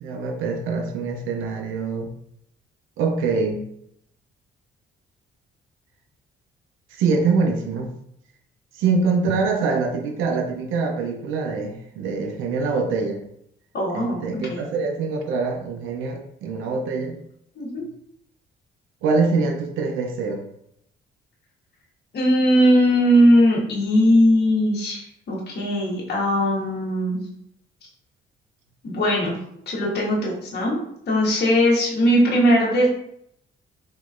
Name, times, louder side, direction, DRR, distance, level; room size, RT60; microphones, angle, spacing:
voice 1, 0.0-2.1 3.0-3.6 6.9-7.9 8.8-13.2 13.9-17.2 19.0-20.5, right 4 dB, 90° right, 4 dB, 0.5 m, -24 dB
voice 2, 13.7-14.2 14.5-14.6 17.6-17.8 22.1-27.2 28.8-29.4 29.7-30.8 31.1-32.9, equal, 55° left, -4 dB, 1.3 m, -19 dB
3.7 x 3.0 x 2.4 m, 0.73 s
cardioid pair, 90°, 20 cm